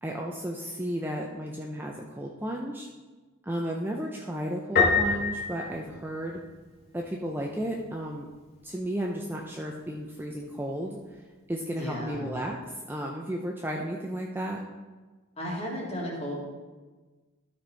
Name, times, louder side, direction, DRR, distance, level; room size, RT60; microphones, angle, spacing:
voice 1, 0.0-2.9 3.4-6.4 6.9-8.3 8.6-11.2 11.5-12.6 12.9-14.6, right 1 dB, 10° right, 0 dB, 0.5 m, -33 dB
Piano, 4.8-6.6, left 4 dB, 45° left, 1.6 m, -26 dB
voice 2, 11.7-12.3 15.4-16.4, equal, 30° left, -4 dB, 2.1 m, -34 dB
12.5 x 4.3 x 4.5 m, 1.3 s
head